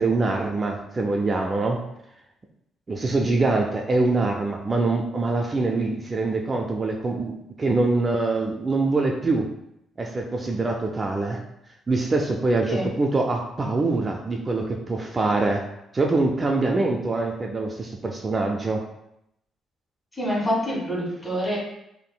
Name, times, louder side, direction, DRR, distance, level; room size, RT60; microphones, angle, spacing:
voice 1, 0.0-1.8 2.9-9.5 10.0-11.4 11.9-15.7 15.9-18.8, right 3 dB, 30° right, 1 dB, 0.3 m, -24 dB
voice 2, 20.1-21.6, equal, 25° left, -5 dB, 1.5 m, -26 dB
3.5 x 2.5 x 2.2 m, 0.80 s
cardioid pair, 90°, 0 cm